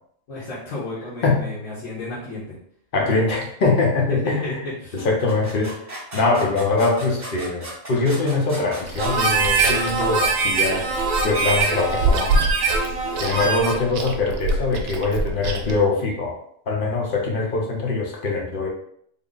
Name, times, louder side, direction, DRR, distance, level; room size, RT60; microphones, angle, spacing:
voice 1, 0.3-2.6 4.1-5.1, left 2 dB, 75° left, -8 dB, 1.4 m, -32 dB
voice 2, 1.2-1.6 2.9-4.7 5.0-5.7 6.1-10.9 11.2-12.5 13.1-16.4 16.7-18.7, left 3 dB, 50° left, 0 dB, 0.8 m, -23 dB
sound 1, 5.0-9.8, right 1 dB, 35° right, 1.2 m, -36 dB
Chewing mastication, 8.8-15.8, right 2 dB, 80° right, 1.0 m, -27 dB
Harmonica, 9.0-13.9, right 4 dB, 60° right, 0.7 m, -23 dB
3.6 x 2.1 x 3.8 m, 0.67 s
omnidirectional pair, 1.4 m